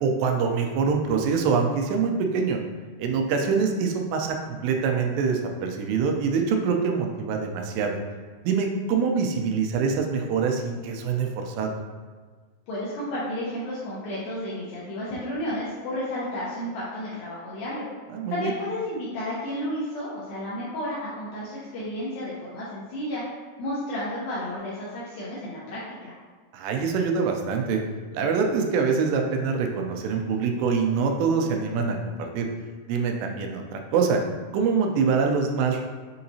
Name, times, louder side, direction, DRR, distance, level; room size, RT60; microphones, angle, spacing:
voice 1, 0.0-2.6 3.0-8.0 8.4-11.7 18.1-18.5 26.5-27.8 28.1-32.5 32.9-34.2 34.5-35.8, right 5 dB, 90° right, 3 dB, 2.8 m, -25 dB
voice 2, 12.7-17.9 18.3-23.2 23.6-26.1, left 1 dB, 75° left, -8 dB, 2.2 m, -32 dB
6.8 x 2.8 x 2.7 m, 1.4 s
omnidirectional pair, 4.9 m